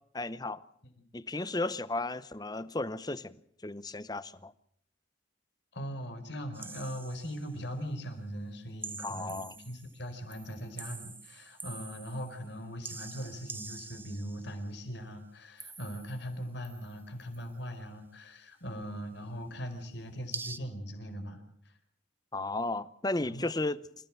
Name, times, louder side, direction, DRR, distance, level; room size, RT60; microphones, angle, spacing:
voice 1, 0.1-0.6 1.1-4.5 9.0-9.5 22.3-23.8, left 2 dB, 20° left, 0.8 m, -34 dB
voice 2, 5.7-21.7 23.2-23.5, equal, 65° left, 4.7 m, -40 dB
sound 1, 6.5-7.5 8.8-10.0 10.3-12.5 12.8-14.6 15.6-16.3 16.6-17.5 20.3-20.6, right 4 dB, 10° right, 0.9 m, -45 dB
28.0 x 16.0 x 7.7 m
head